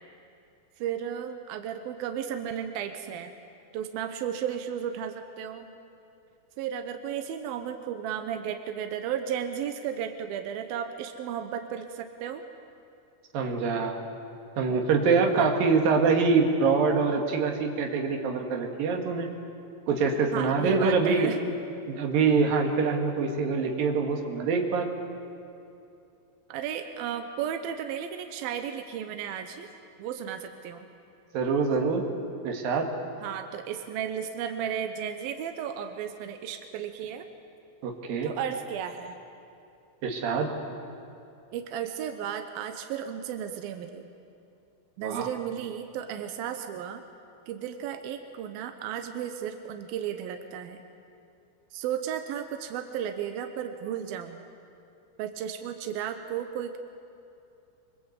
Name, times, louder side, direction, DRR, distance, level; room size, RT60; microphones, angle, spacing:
voice 1, 0.8-3.3 3.7-5.7 6.6-12.4 15.0-15.1 15.3-15.5 20.3-21.4 26.5-29.7 30.0-30.9 33.2-37.3 38.2-39.2 41.5-44.1 45.0-47.0 47.5-50.8 51.7-54.4 55.2-56.8, right 9 dB, 75° right, 6 dB, 2.2 m, -34 dB
voice 2, 13.3-14.0 14.6-19.3 19.9-21.3 21.9-24.9 31.3-32.0 32.4-32.9 37.8-38.3 40.0-40.5 45.0-45.3, right 4 dB, 55° right, 3 dB, 3.3 m, -25 dB
25.0 x 23.0 x 8.3 m, 2.7 s
omnidirectional pair, 5.6 m